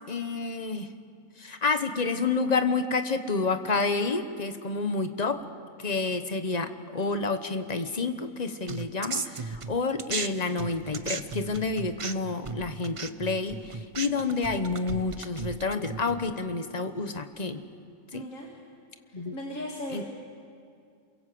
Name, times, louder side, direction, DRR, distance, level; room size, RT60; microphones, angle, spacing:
voice 1, 0.1-0.9 1.4-5.4 5.8-17.6 18.1-18.3 19.1-19.4 19.9-20.1, left 4 dB, 30° left, 9 dB, 1.1 m, -29 dB
sound 1, 8.7-10.3 10.6-16.3, right 5 dB, 35° right, 0.5 m, -36 dB
voice 2, 18.1-18.5 19.1-20.1, left 1 dB, 60° left, 0 dB, 2.4 m, -37 dB
28.0 x 23.0 x 7.8 m, 2.3 s
omnidirectional pair, 1.5 m